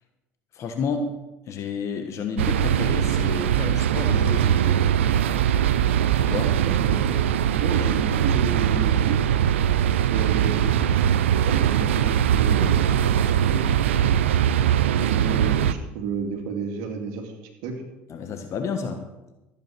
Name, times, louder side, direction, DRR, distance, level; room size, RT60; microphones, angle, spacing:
voice 1, 0.5-1.1 1.5-4.9 6.2-6.5 18.1-19.0, left 5 dB, 50° left, 6 dB, 1.5 m, -30 dB
sound 1, 2.4-15.7, right 10 dB, 85° right, 0.6 m, -21 dB
voice 2, 6.4-7.2 7.6-9.2 10.1-11.0 11.4-12.8 13.4-13.6 15.0-17.3 17.6-17.8, right 5 dB, 70° right, 4 dB, 2.6 m, -31 dB
13.5 x 8.9 x 6.1 m, 1.0 s
hypercardioid pair, 75°, 6 cm